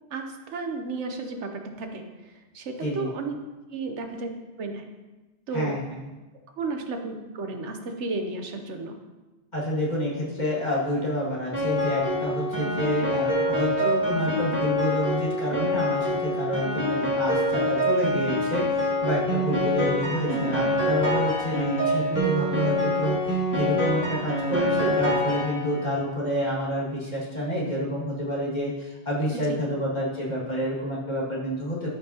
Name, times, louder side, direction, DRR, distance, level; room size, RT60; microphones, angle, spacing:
voice 1, 0.1-3.3 3.7-4.3 4.6-4.8 5.5-5.8 6.6-9.0 20.3-20.5 29.3-29.6, right 3 dB, 90° right, 5 dB, 1.2 m, -33 dB
voice 2, 5.5-6.0 9.5-31.9, equal, 40° left, -7 dB, 2.4 m, -28 dB
Piano, 11.5-25.9, left 1 dB, 15° right, 2.1 m, -26 dB
12.5 x 5.5 x 2.9 m, 1.1 s
omnidirectional pair, 1.1 m